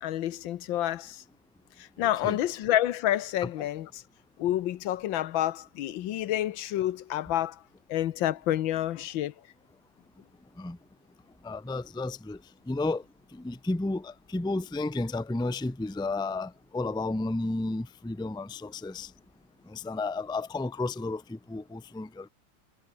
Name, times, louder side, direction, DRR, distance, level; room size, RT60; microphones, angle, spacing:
voice 1, 0.0-1.2 2.0-4.0 4.4-7.6 7.9-9.3, left 13 dB, 90° left, 1.6 m, -28 dB
voice 2, 11.4-12.4 12.7-13.0 13.4-19.1 19.7-22.3, left 2 dB, 5° left, 0.5 m, -32 dB
omnidirectional pair, 2.1 m